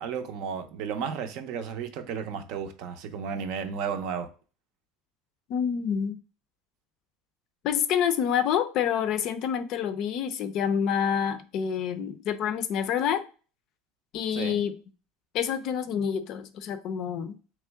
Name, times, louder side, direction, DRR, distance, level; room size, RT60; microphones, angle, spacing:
voice 1, 0.0-4.3 14.3-14.6, right 6 dB, 55° right, 0.6 m, -33 dB
voice 2, 5.5-6.2 7.6-13.2 14.1-14.7 15.3-17.3, left 8 dB, 45° left, 0.4 m, -27 dB
3.6 x 3.1 x 3.4 m
cardioid pair, 165°, 0 cm